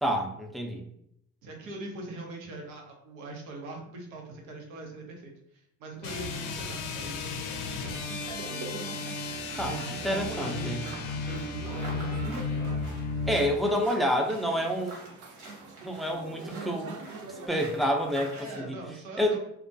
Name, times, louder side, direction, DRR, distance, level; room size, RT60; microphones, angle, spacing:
voice 1, 0.0-0.8 9.6-10.8 13.3-15.0 15.8-16.9 17.5-18.8 19.2-19.4, equal, ahead, 2 dB, 0.4 m, -28 dB
voice 2, 1.4-7.6 9.5-12.4 18.3-19.4, right 2 dB, 85° right, 1 dB, 0.7 m, -42 dB
sound 1, 6.0-13.5, left 3 dB, 85° left, 0.5 m, -34 dB
sound 2, 7.5-17.5, right 3 dB, 45° right, 0.6 m, -44 dB
sound 3, 9.7-18.6, right 2 dB, 65° right, 1.1 m, -48 dB
2.3 x 2.1 x 2.6 m, 0.74 s
hypercardioid pair, 55°, 41 cm